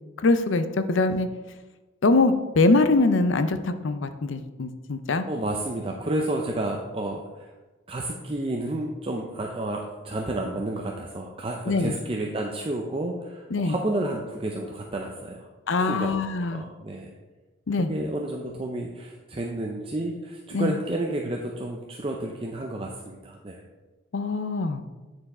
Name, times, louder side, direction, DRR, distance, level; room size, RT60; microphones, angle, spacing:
voice 1, 0.2-1.3 2.0-5.3 11.7-11.9 13.5-13.8 15.7-16.6 17.7-17.9 20.5-20.8 24.1-24.8, left 3 dB, 70° left, 10 dB, 0.5 m, -23 dB
voice 2, 5.3-7.5 7.9-15.5 15.8-16.2 16.5-17.1 17.8-23.6, right 1 dB, 25° right, 0 dB, 0.5 m, -31 dB
9.0 x 4.7 x 4.2 m, 1.2 s
head